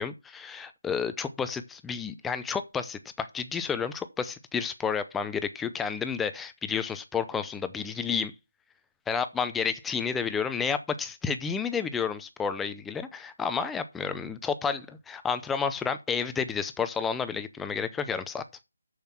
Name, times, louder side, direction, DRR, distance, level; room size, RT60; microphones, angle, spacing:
voice 1, 0.0-8.3 9.1-18.4, left 6 dB, 5° left, 0.5 m, -31 dB
6.9 x 6.5 x 5.8 m
figure-of-eight pair, 165°, 0 cm